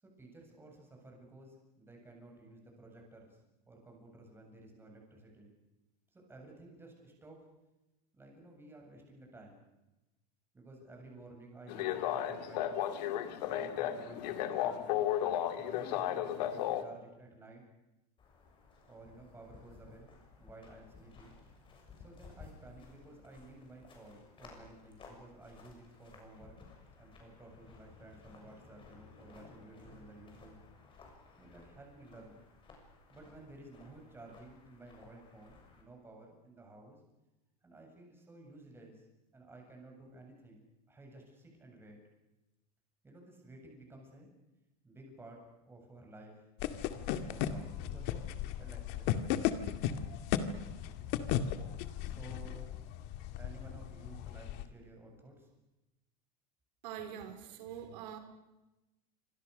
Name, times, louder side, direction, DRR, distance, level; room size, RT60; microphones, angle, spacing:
voice 1, 0.0-3.4 3.7-5.5 6.1-7.4 8.1-9.6 10.5-12.7 13.5-17.6 18.9-21.4 22.0-26.6 27.0-30.6 31.4-32.4 33.1-37.0 37.6-39.1 39.3-42.0 43.0-44.3 44.8-46.5 46.9-48.2 48.6-49.5 51.9-52.7 53.4-55.5, right 2 dB, 10° right, 1 dB, 7.7 m, -54 dB
sound 1, 11.7-16.8, left 11 dB, 75° left, 2.6 m, -34 dB
sound 2, 18.2-35.8, left 4 dB, 25° left, 7.1 m, -57 dB
sound 3, 46.6-54.6, left 10 dB, 50° left, 2.1 m, -36 dB
voice 2, 56.8-58.2, right 9 dB, 85° right, 7 dB, 4.3 m, -44 dB
28.0 x 26.0 x 6.7 m, 0.99 s
supercardioid pair, 150°, 21 cm